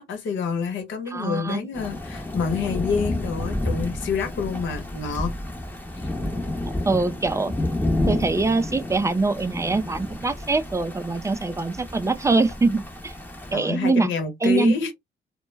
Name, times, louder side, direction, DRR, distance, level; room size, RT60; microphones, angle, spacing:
voice 1, 0.0-5.3 5.9-6.1 13.5-14.9, left 5 dB, 70° left, 0.9 m, -28 dB
voice 2, 1.1-1.7 6.8-7.5 8.1-13.1 13.5-14.1 14.4-14.7, right 3 dB, 15° right, 0.3 m, -23 dB
Thunder / Rain, 1.7-13.5, left 1 dB, 10° left, 0.8 m, -30 dB
2.2 x 2.0 x 3.2 m
cardioid pair, 90°, 20 cm